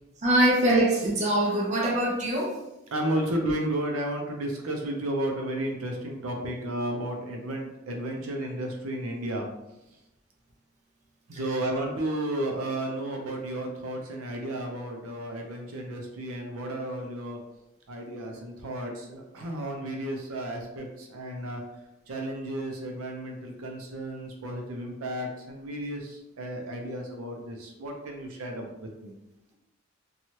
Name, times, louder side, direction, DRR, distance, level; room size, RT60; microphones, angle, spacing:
voice 1, 0.2-2.6, right 1 dB, 35° right, -3 dB, 0.6 m, -23 dB
voice 2, 2.9-9.5 11.3-17.4 17.9-21.6 22.1-29.1, right 1 dB, 85° right, 2 dB, 0.5 m, -33 dB
3.0 x 2.3 x 2.7 m, 0.91 s
head